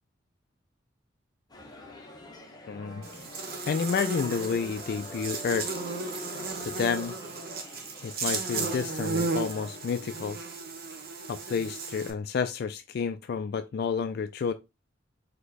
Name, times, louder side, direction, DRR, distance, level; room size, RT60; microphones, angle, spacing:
sound 1, 1.5-8.1, left 2 dB, 20° left, 0.7 m, -48 dB
voice 1, 2.7-3.0 3.7-5.7 6.6-7.1 8.0-10.4 11.3-14.5, left 6 dB, 55° left, 0.3 m, -30 dB
sound 2, 2.7-7.9 8.3-9.0 9.4-10.2, left 1 dB, 20° right, 2.0 m, -50 dB
Buzz, 3.0-12.1, right 4 dB, 55° right, 0.9 m, -34 dB
4.8 x 2.2 x 4.1 m
head